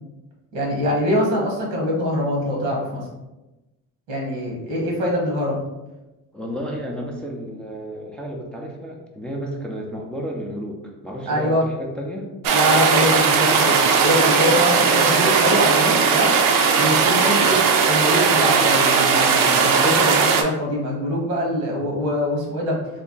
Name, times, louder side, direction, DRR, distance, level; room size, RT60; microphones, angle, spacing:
voice 1, 0.5-3.0 4.1-5.6 11.3-11.6 12.5-16.3 16.8-22.8, equal, 85° right, -1 dB, 1.4 m, -23 dB
voice 2, 6.3-12.3, equal, 5° left, 0 dB, 0.4 m, -32 dB
sound 1, 12.4-20.4, right 5 dB, 60° right, 0.6 m, -17 dB
3.5 x 2.1 x 3.8 m, 1.0 s
cardioid pair, 110°, 37 cm